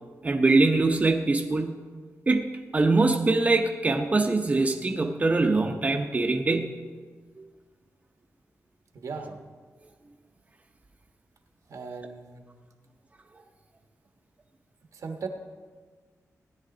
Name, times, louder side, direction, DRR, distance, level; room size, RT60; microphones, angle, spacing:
voice 1, 0.2-1.8 2.3-2.5 2.7-6.7, right 3 dB, 25° right, 3 dB, 0.7 m, -23 dB
voice 2, 8.9-9.4 11.7-12.4 14.9-15.3, right 4 dB, 80° right, 4 dB, 1.4 m, -37 dB
16.5 x 10.0 x 3.8 m, 1.5 s
wide cardioid pair, 125°, 6 cm